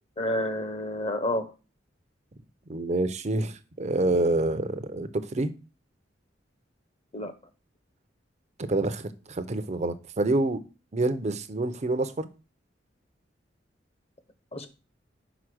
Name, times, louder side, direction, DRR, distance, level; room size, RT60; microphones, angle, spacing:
voice 1, 0.2-1.5 7.1-7.3 14.5-14.7, left 1 dB, 35° left, 9 dB, 1.0 m, -29 dB
voice 2, 2.7-5.5 8.7-10.6 10.9-12.3, right 2 dB, 40° right, 10 dB, 0.7 m, -27 dB
5.2 x 4.9 x 6.2 m, 0.32 s
head